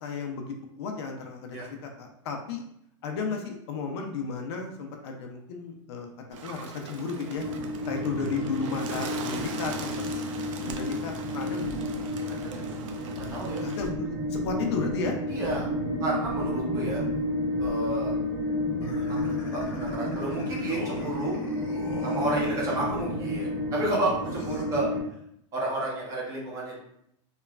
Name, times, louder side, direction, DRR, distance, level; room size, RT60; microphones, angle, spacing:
voice 1, 0.0-2.6 3.0-6.1 6.4-7.4 7.8-10.2 10.6-11.7 13.4-15.1, left 4 dB, 55° left, 3 dB, 0.4 m, -34 dB
Bird, 6.3-13.9, right 5 dB, 90° right, 0.4 m, -40 dB
sound 1, 7.3-25.0, left 1 dB, 45° right, 1.3 m, -31 dB
voice 2, 12.2-12.8 13.2-13.6 15.3-15.7 16.0-17.0 17.6-18.2 19.1-21.4 22.0-24.9 25.5-26.8, right 2 dB, 20° right, -3 dB, 0.6 m, -31 dB
sound 2, 18.8-23.0 24.2-24.6, left 3 dB, 75° left, 1.0 m, -41 dB
3.0 x 2.2 x 2.3 m, 0.74 s
supercardioid pair, 165°, 16 cm